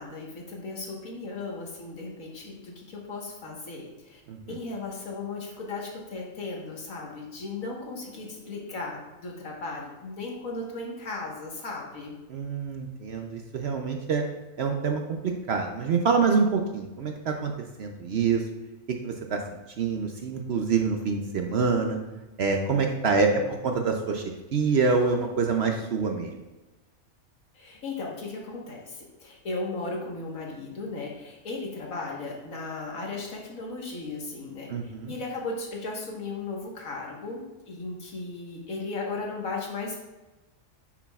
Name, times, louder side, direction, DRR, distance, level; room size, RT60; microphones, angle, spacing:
voice 1, 0.0-4.2 4.5-12.1 23.1-23.5 27.5-40.1, left 3 dB, 70° left, -1 dB, 1.8 m, -36 dB
voice 2, 12.3-14.2 14.6-17.5 17.8-18.4 19.0-19.4 19.8-22.0 22.4-24.2 24.5-26.3 34.7-35.1, right 5 dB, 60° right, 3 dB, 0.7 m, -26 dB
9.8 x 6.1 x 2.4 m, 1.1 s
omnidirectional pair, 1.5 m